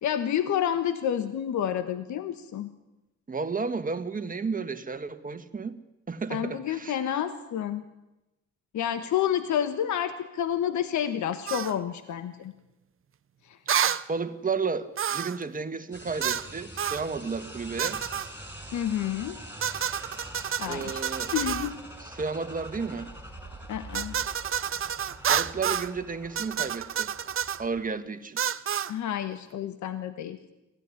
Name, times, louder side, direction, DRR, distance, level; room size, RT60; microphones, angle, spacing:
voice 1, 0.0-2.7 6.3-7.8 8.7-12.5 13.4-13.6 18.7-19.4 20.6-21.0 21.3-21.7 23.7-24.1 28.9-30.4, left 10 dB, 70° left, 10 dB, 1.4 m, -29 dB
voice 2, 3.3-5.8 6.1-7.0 14.1-18.0 20.6-21.3 22.0-23.1 25.3-27.1 27.6-28.4, right 4 dB, 25° right, 9 dB, 1.8 m, -32 dB
sound 1, 11.5-11.7 13.7-14.0 15.0-15.4 16.2-16.5 16.8-17.1 17.8-18.3 19.6-21.7 23.9-25.9 26.4-27.6 28.4-28.9, right 9 dB, 45° right, 0.8 m, -29 dB
sound 2, 15.9-27.9, equal, 5° right, 6.4 m, -44 dB
24.0 x 16.0 x 9.9 m, 0.98 s
cardioid pair, 90°, 30 cm